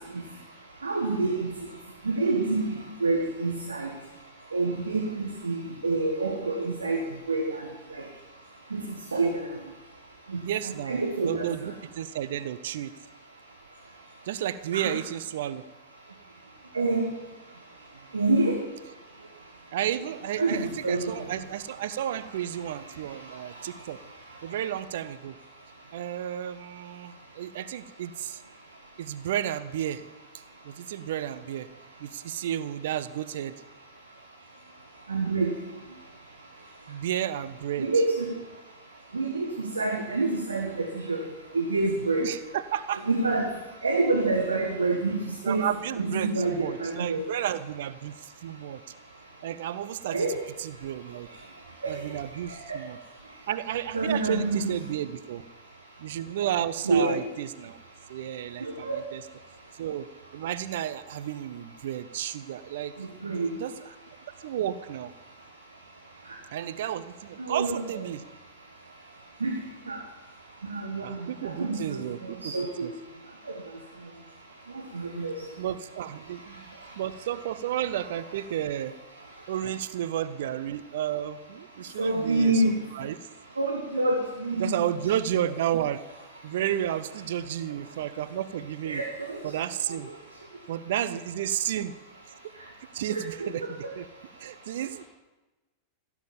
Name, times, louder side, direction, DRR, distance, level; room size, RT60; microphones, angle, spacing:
voice 1, 0.8-1.5 2.0-2.7 3.0-3.9 4.5-7.0 7.3-7.4 8.7-9.3 10.3-11.5 14.7-14.9 16.7-17.1 18.1-18.6 20.4-21.1 35.1-35.5 37.8-38.3 39.1-41.2 41.5-42.2 43.1-43.5 43.8-45.2 45.5-47.2 50.1-50.4 51.8-51.9 53.9-54.7 56.8-57.2 58.6-59.0 63.2-63.5 67.4-67.8 69.4-69.6 69.9-70.0 70.7-71.2 71.4-72.0 72.4-72.9 74.9-75.3 82.0-82.8 83.6-84.8 88.8-89.3 93.1-93.5, right 3 dB, 75° right, 1 dB, 1.5 m, -27 dB
voice 2, 10.4-12.9 14.3-15.7 19.7-24.0 24.4-25.4 25.9-28.4 29.0-30.1 30.3-31.7 32.0-33.5 36.9-37.9 42.2-43.0 45.4-48.8 49.4-51.3 51.8-53.0 53.5-55.4 56.0-57.8 58.1-59.3 59.8-60.1 60.3-62.9 63.2-63.9 64.4-65.1 66.5-68.2 71.0-72.5 72.8-72.9 75.6-79.0 79.5-83.2 84.6-86.0 86.4-89.0 89.4-90.1 90.7-92.0 92.4-92.6 92.9-94.1 94.4-95.0, right 11 dB, 55° right, 15 dB, 0.6 m, -32 dB
15.5 x 7.1 x 7.2 m, 1.1 s
figure-of-eight pair, 90°, 0 cm